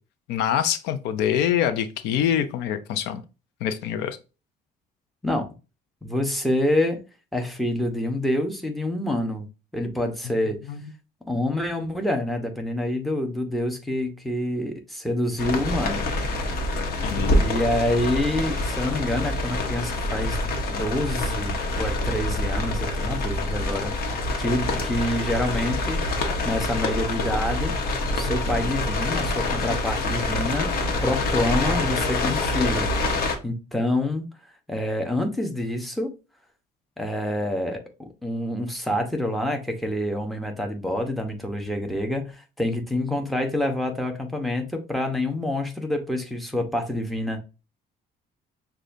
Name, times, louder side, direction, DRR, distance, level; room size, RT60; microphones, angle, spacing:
voice 1, 0.3-3.2 3.6-4.2 10.7-10.9 17.0-17.5, left 9 dB, 90° left, 0.6 m, -25 dB
voice 2, 6.0-7.0 7.3-9.5 9.7-10.6 11.3-16.1 17.4-20.4 20.7-26.0 26.4-27.7 28.1-30.7 31.0-34.3 34.7-36.1 37.0-47.4, left 1 dB, ahead, 0.9 m, -27 dB
sound 1, 15.4-33.4, left 2 dB, 65° left, 1.1 m, -26 dB
6.4 x 2.4 x 2.7 m
cardioid pair, 110°, 17 cm